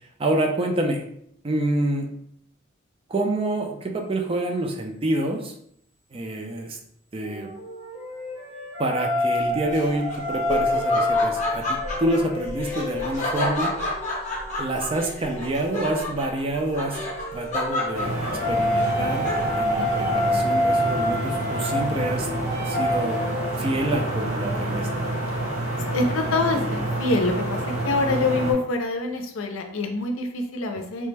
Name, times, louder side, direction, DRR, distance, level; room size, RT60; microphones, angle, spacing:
voice 1, 0.2-1.0 1.4-2.1 3.1-5.5 6.1-6.8 7.1-7.5 8.8-13.7 14.6-17.0 17.3-19.3 19.6-22.3 22.7-23.2 23.6-24.9, right 1 dB, 25° right, 2 dB, 0.4 m, -27 dB
sound 1, 7.3-15.6 16.7-23.5, left 1 dB, 70° right, 1.3 m, -27 dB
Laughter, 9.7-19.7, left 1 dB, 35° left, 0.6 m, -31 dB
sound 2, 17.9-28.5, right 1 dB, 85° right, 0.9 m, -28 dB
voice 2, 25.9-31.1, left 2 dB, 80° left, 5 dB, 0.5 m, -25 dB
3.2 x 2.1 x 3.3 m, 0.71 s
head